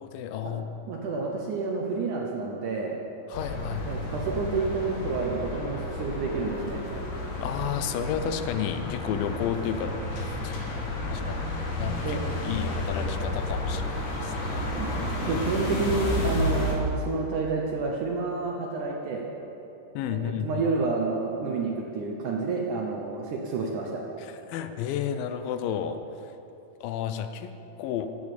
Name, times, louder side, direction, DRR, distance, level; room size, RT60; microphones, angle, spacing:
voice 1, 0.0-0.7 3.3-3.9 7.4-9.9 10.2-11.5 11.8-12.2 12.4-14.9 19.9-20.6 24.2-26.0 26.2-26.4 26.8-28.1, left 9 dB, 75° left, 9 dB, 2.2 m, -32 dB
voice 2, 0.9-3.0 3.9-6.8 12.0-12.2 14.7-14.9 15.2-19.3 20.1-24.0, right 4 dB, 70° right, -1 dB, 2.0 m, -29 dB
sound 1, 3.3-16.8, left 1 dB, 55° left, 2.7 m, -31 dB
14.5 x 8.5 x 6.8 m, 2.9 s
omnidirectional pair, 4.6 m